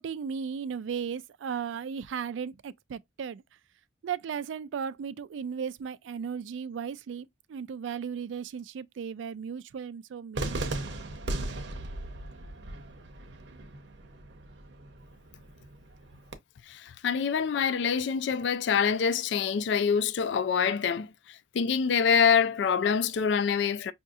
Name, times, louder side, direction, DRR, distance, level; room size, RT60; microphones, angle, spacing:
voice 1, 0.0-3.4 4.0-10.9, right 7 dB, 85° right, 0.3 m, -36 dB
Cheering / Fireworks, 10.3-16.3, right 2 dB, 70° right, 0.8 m, -37 dB
voice 2, 16.7-23.9, left 6 dB, 70° left, 0.3 m, -26 dB
5.5 x 2.7 x 2.4 m
head